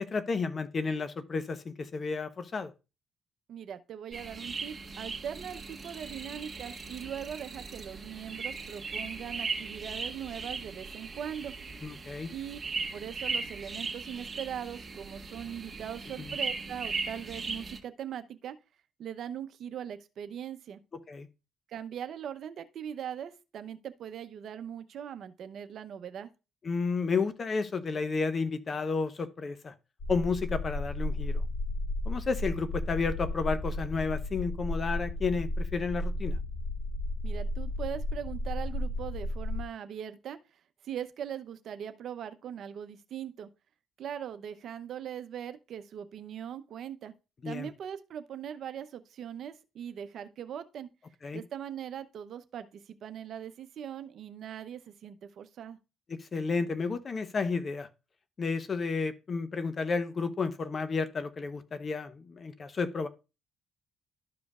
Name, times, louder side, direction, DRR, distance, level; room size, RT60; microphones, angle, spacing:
voice 1, 0.0-2.7 11.8-12.3 16.2-16.3 21.1-21.3 26.6-29.7 30.1-31.4 32.0-36.4 47.4-47.7 51.2-51.4 56.1-57.9 58.4-63.1, left 4 dB, 40° left, 0.9 m, -32 dB
voice 2, 3.5-11.5 12.3-12.6 12.9-18.6 19.0-20.8 21.7-26.3 37.2-40.4 40.8-43.5 44.0-47.1 47.4-50.9 51.3-55.8, right 9 dB, 65° right, 0.7 m, -40 dB
sound 1, 4.1-17.8, right 4 dB, 25° right, 1.6 m, -38 dB
sound 2, 30.0-39.6, left 1 dB, 65° left, 2.2 m, -33 dB
12.5 x 5.1 x 2.4 m
cardioid pair, 80°, 0 cm